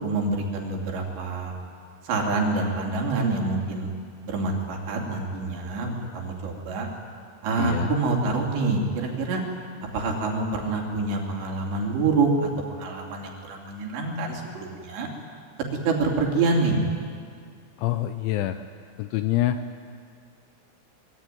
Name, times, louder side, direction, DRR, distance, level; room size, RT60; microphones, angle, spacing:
voice 1, 0.0-1.5 2.0-3.9 4.2-6.9 7.4-9.4 9.9-15.1 15.8-16.8, right 3 dB, 60° right, 0 dB, 5.1 m, -26 dB
voice 2, 7.6-8.0 17.8-18.6 19.0-19.6, left 13 dB, 80° left, 9 dB, 2.8 m, -26 dB
25.0 x 23.0 x 9.4 m, 2.2 s
omnidirectional pair, 6.0 m